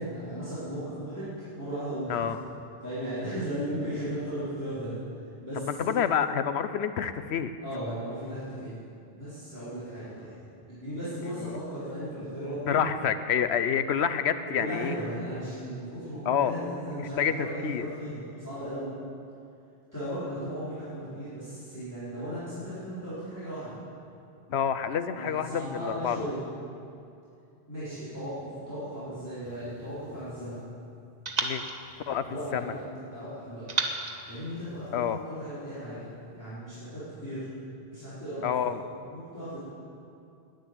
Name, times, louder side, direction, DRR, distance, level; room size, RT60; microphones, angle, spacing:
voice 1, 0.0-2.1 2.8-5.0 5.4-6.1 7.6-8.7 9.1-10.3 10.7-12.8 14.6-18.9 19.9-23.8 25.1-26.5 27.7-30.6 32.2-32.8 33.1-33.7 34.3-37.4 37.9-38.7 39.1-39.6, equal, 15° left, -15 dB, 4.2 m, -36 dB
voice 2, 2.1-2.4 5.6-7.5 12.7-15.0 16.3-16.5 16.9-17.9 24.5-26.3 31.4-31.7 32.1-32.7 34.9-35.2 38.4-38.8, left 8 dB, 85° left, 11 dB, 1.0 m, -28 dB
sound 1, 29.4-30.7 31.2-32.9 33.7-35.3, right 3 dB, 40° right, 1.0 m, -36 dB
10.5 x 9.0 x 10.0 m, 2.6 s
omnidirectional pair, 1.1 m